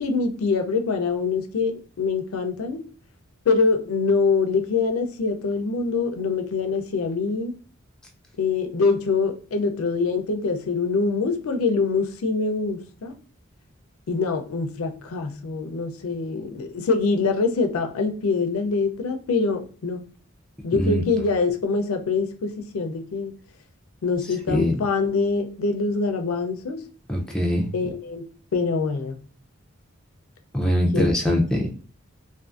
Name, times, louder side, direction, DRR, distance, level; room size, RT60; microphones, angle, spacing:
voice 1, 0.0-2.8 3.5-7.5 8.4-13.2 14.1-20.0 20.6-23.3 24.0-26.8 27.7-28.3 28.5-29.2 30.9-31.3, left 4 dB, 80° left, 0.4 m, -24 dB
voice 2, 20.7-21.0 24.5-24.7 27.1-27.7 30.5-31.7, equal, 5° left, 0.4 m, -22 dB
2.5 x 2.5 x 2.4 m
head